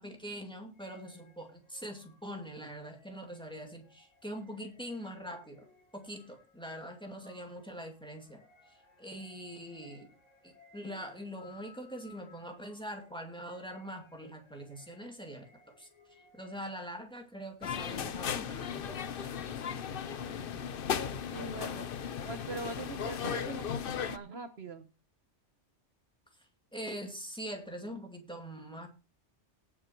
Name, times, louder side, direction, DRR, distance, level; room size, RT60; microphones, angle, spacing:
voice 1, 0.0-5.7 5.9-8.4 8.7-10.1 10.4-15.9 16.3-19.3 26.7-28.9, equal, 5° left, 2 dB, 2.4 m, -43 dB
sound 1, 0.7-17.0, left 4 dB, 35° left, 2.7 m, -63 dB
sound 2, 17.6-24.2, left 7 dB, 55° left, 0.8 m, -36 dB
voice 2, 21.3-21.9 22.2-24.9, right 3 dB, 60° right, 9 dB, 1.2 m, -42 dB
18.0 x 6.1 x 4.6 m, 0.33 s
omnidirectional pair, 1.2 m